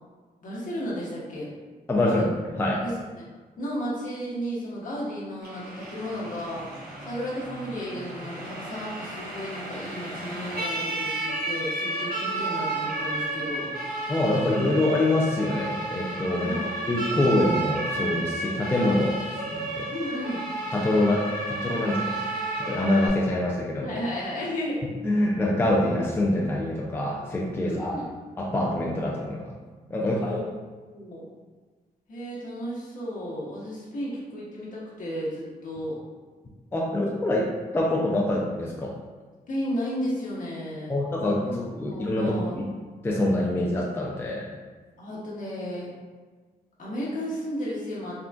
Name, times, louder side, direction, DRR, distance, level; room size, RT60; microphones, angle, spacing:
voice 1, 0.4-1.5 2.0-2.3 2.8-3.2 3.6-6.7 7.0-13.7 16.4-16.7 19.9-20.4 23.8-24.8 27.6-28.1 30.0-30.5 30.8-31.2 32.1-36.0 39.5-41.0 41.4-42.5 45.0-45.9 46.8-48.3, equal, 60° left, -6 dB, 1.0 m, -33 dB
voice 2, 1.9-2.2 2.6-2.8 14.1-16.6 16.9-19.2 19.5-19.9 20.7-22.2 22.6-24.0 25.0-28.0 28.4-29.5 29.9-30.4 36.7-37.5 37.7-38.9 40.9-42.7 43.0-44.5, left 1 dB, 15° left, -3 dB, 0.3 m, -25 dB
Siren, 5.4-23.1, right 2 dB, 80° right, 1.1 m, -32 dB
3.7 x 2.3 x 2.2 m, 1.4 s
cardioid pair, 110°, 16 cm